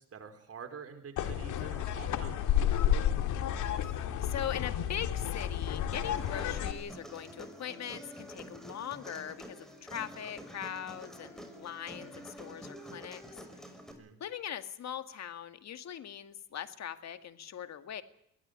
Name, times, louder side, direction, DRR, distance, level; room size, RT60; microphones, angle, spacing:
voice 1, 0.0-2.6 13.9-14.2, right 6 dB, 50° right, 6 dB, 4.9 m, -48 dB
sound 1, 1.2-6.7, left 10 dB, 85° left, 2.2 m, -31 dB
voice 2, 3.6-3.9 4.2-13.2 13.5-13.6 14.2-18.0, left 9 dB, 60° left, 10 dB, 2.2 m, -41 dB
Human voice, 5.9-13.9, equal, ahead, 6.0 m, -48 dB
22.5 x 16.0 x 9.8 m, 0.79 s
cardioid pair, 90°, 30 cm